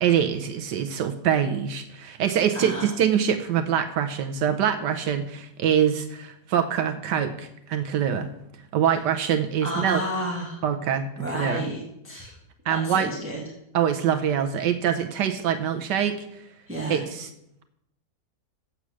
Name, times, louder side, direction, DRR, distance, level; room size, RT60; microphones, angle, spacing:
voice 1, 0.0-8.3 8.7-10.0 10.6-11.0 11.3-11.6 12.7-13.1 13.7-16.4 16.9-17.3, right 8 dB, 80° right, 6 dB, 1.3 m, -24 dB
voice 2, 2.5-2.9 8.8-9.0 9.6-10.6 11.2-12.4 12.7-13.4 16.7-17.0, equal, 5° right, -3 dB, 1.7 m, -31 dB
8.6 x 8.2 x 6.2 m, 0.81 s
omnidirectional pair, 1.8 m